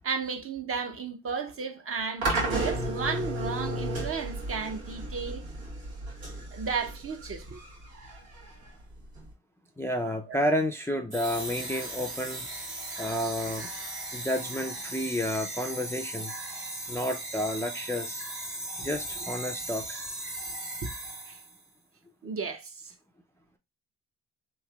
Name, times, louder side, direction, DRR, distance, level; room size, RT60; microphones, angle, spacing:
voice 1, 0.0-5.5 6.5-7.6 10.3-10.4 21.3-21.4 22.2-22.9, right 5 dB, 40° right, 0.6 m, -34 dB
sound 1, 2.2-9.3, right 2 dB, 85° right, 1.4 m, -33 dB
voice 2, 9.8-12.5 13.0-13.7 14.1-16.3 16.9-18.2 18.8-20.1, equal, 10° left, 0.3 m, -31 dB
sound 2, 11.1-21.6, right 1 dB, 65° right, 1.7 m, -37 dB
3.2 x 2.8 x 2.2 m
cardioid pair, 75°, 35 cm